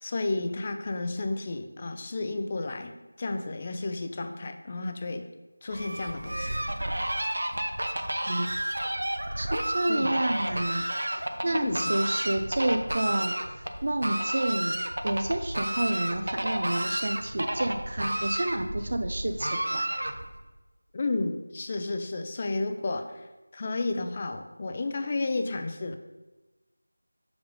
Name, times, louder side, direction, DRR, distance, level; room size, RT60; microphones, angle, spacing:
voice 1, 0.0-5.3 5.6-6.6 9.9-10.1 11.5-11.8 20.9-23.3 23.5-26.0, left 2 dB, 25° left, 7 dB, 0.5 m, -32 dB
Fowl, 5.7-20.4, right 1 dB, 75° right, 0.8 m, -31 dB
voice 2, 9.4-14.8 15.0-19.9, right 1 dB, 50° right, 7 dB, 0.5 m, -30 dB
7.8 x 3.4 x 5.3 m, 1.1 s
figure-of-eight pair, 175°, 0 cm